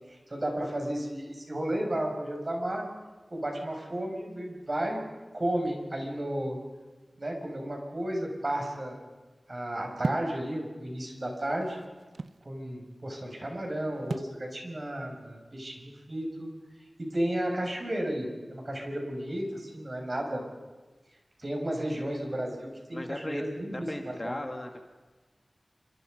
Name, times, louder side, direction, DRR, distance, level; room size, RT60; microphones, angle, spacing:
voice 1, 0.1-2.9 3.3-5.0 5.3-6.6 7.2-9.0 9.5-11.8 12.4-16.5 17.0-20.4 21.4-24.4, right 1 dB, 40° right, 1 dB, 7.0 m, -33 dB
sound 1, 10.0-10.4 11.3-12.5 14.1-14.4, right 3 dB, 75° right, 0.7 m, -34 dB
voice 2, 22.9-24.8, left 1 dB, 30° left, 4 dB, 2.5 m, -37 dB
29.0 x 26.0 x 5.5 m, 1.2 s
wide cardioid pair, 75°, 0 cm